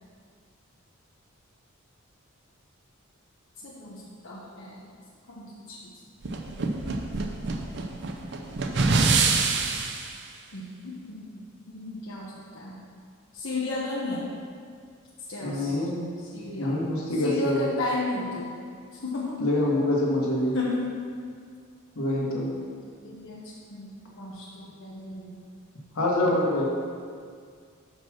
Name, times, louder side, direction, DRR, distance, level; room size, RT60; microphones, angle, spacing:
voice 1, 3.6-4.9 5.3-5.9 10.5-11.3 11.7-12.8 13.3-14.3 15.3-15.8 16.3-16.7 17.2-18.5 19.0-19.4 20.5-20.9 22.1-23.9 24.2-25.3, left 2 dB, 60° left, -6 dB, 1.0 m, -34 dB
sound 1, 6.2-10.1, right 4 dB, 55° right, 0.6 m, -25 dB
voice 2, 15.4-16.0 16.6-17.6 19.4-20.5 21.9-22.5 25.9-26.7, left 1 dB, 85° left, -4 dB, 1.6 m, -25 dB
5.9 x 5.3 x 6.1 m, 2.1 s
head